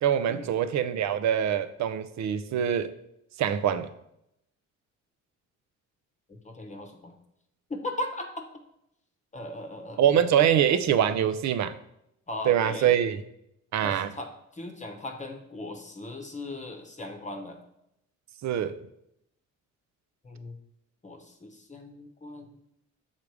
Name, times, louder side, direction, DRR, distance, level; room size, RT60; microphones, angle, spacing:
voice 1, 0.0-2.9 3.4-3.9 10.0-11.7 12.5-13.2 13.7-14.1 18.4-18.8, right 9 dB, 65° right, 12 dB, 0.6 m, -24 dB
voice 2, 6.3-7.1 7.7-8.5 9.3-10.2 12.3-12.9 13.8-17.6 20.2-20.6 21.0-22.5, left 1 dB, 25° left, 4 dB, 0.9 m, -38 dB
6.4 x 3.7 x 4.8 m, 0.79 s
cardioid pair, 90°, 30 cm